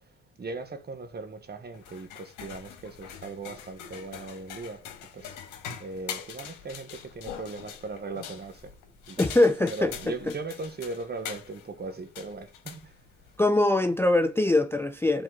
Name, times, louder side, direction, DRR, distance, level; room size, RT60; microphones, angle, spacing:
voice 1, 0.4-4.8 5.1-5.4 5.8-8.7 9.1-12.9, right 3 dB, 35° right, 1.2 m, -38 dB
sound 1, 1.7-13.4, left 8 dB, 90° left, 1.7 m, -43 dB
voice 2, 9.2-10.1 13.4-15.2, left 2 dB, 10° left, 0.5 m, -23 dB
8.0 x 4.2 x 3.9 m
cardioid pair, 90°, 30 cm